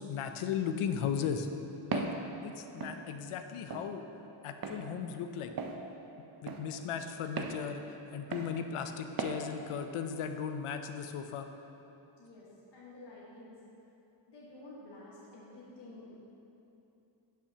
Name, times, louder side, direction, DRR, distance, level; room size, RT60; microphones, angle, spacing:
voice 1, 0.0-1.5 1.9-2.1 2.4-4.0 4.4-5.5 6.4-7.8 8.1-11.5, left 7 dB, 80° left, 7 dB, 0.6 m, -36 dB
Walk footsteps, 1.9-2.2 2.8-3.0 3.7-3.9 4.6-4.8 5.6-5.8 6.5-6.6 7.4-7.6 8.3-8.5 9.2-9.4, right 4 dB, 45° right, 0.7 m, -36 dB
voice 2, 12.1-13.6 14.3-16.1, left 2 dB, 55° left, -7 dB, 1.5 m, -51 dB
11.0 x 5.8 x 2.8 m, 2.9 s
cardioid pair, 80°, 50 cm